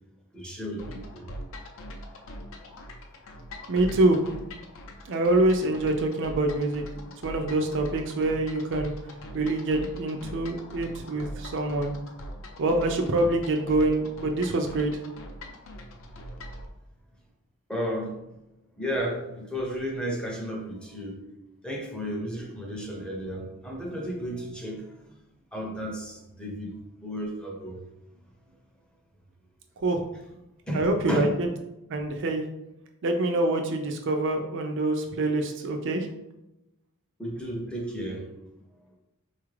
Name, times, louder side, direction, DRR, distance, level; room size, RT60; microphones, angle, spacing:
voice 1, 0.3-1.3 2.0-2.6 5.0-5.1 17.7-18.2 18.8-21.3 21.6-25.2 25.5-27.8 30.7-31.3 37.2-38.3 38.9-39.0, equal, 5° left, 0 dB, 0.5 m, -33 dB
sound 1, 0.8-16.7, equal, 65° left, 0.5 m, -42 dB
voice 2, 3.7-4.2 5.1-6.8 7.2-8.9 9.3-11.9 12.6-14.9 29.8-30.0 30.7-31.3 31.9-32.4 33.0-36.1, right 2 dB, 60° right, 4 dB, 0.4 m, -25 dB
4.1 x 2.4 x 3.2 m, 0.91 s
head